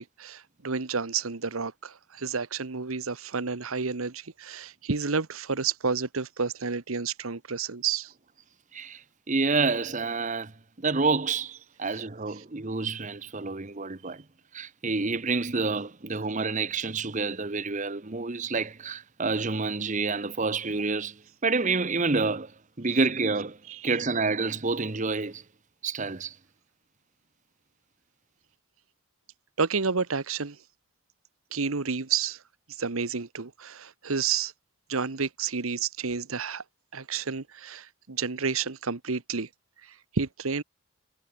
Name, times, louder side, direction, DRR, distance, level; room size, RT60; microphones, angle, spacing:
voice 1, 0.0-8.1 11.9-12.0 12.3-12.4 23.7-24.0 29.6-30.6 31.5-32.4 32.7-34.5 34.9-36.6 36.9-39.5 39.8-40.6, right 5 dB, 80° right, 1.2 m, -30 dB
voice 2, 9.3-10.5 10.8-14.2 14.5-22.5 22.8-23.6 23.8-25.4 25.8-26.3, right 4 dB, 35° right, 1.0 m, -28 dB
head